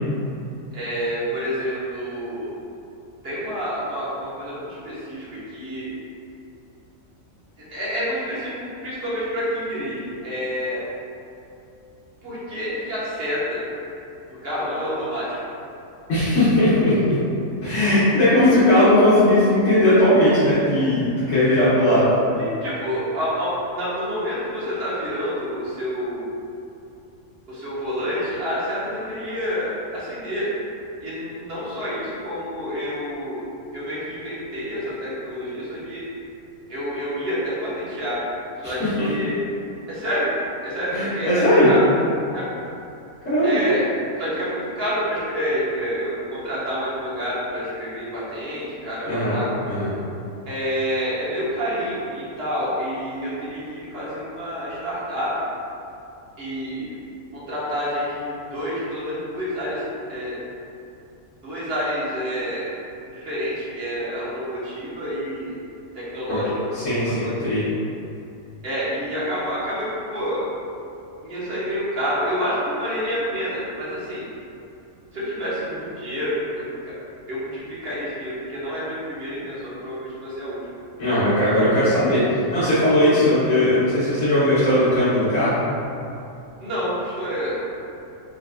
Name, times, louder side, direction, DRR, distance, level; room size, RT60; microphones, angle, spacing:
voice 1, 0.7-2.5 3.2-5.9 7.7-10.8 12.2-13.6 14.3-15.3 22.4-26.3 27.5-30.5 31.0-33.4 33.7-36.0 36.7-38.2 38.6-39.4 39.9-40.3 40.6-41.8 42.3-42.5 43.4-43.8 44.2-49.5 50.5-55.5 56.4-57.0 57.3-60.4 61.4-62.7 63.1-65.5 65.9-66.8 67.1-67.3 68.6-70.4 71.2-74.3 75.1-76.4 76.6-76.8 77.3-80.6 86.6-87.5, equal, 50° right, -9 dB, 1.1 m, -28 dB
voice 2, 16.1-17.1 17.6-22.1 38.6-38.9 40.9-41.7 43.2-43.6 49.1-49.9 66.3-66.4 66.7-67.6 81.0-85.6, left 1 dB, 65° left, -15 dB, 1.3 m, -18 dB
4.0 x 2.4 x 2.2 m, 2.7 s
omnidirectional pair, 1.4 m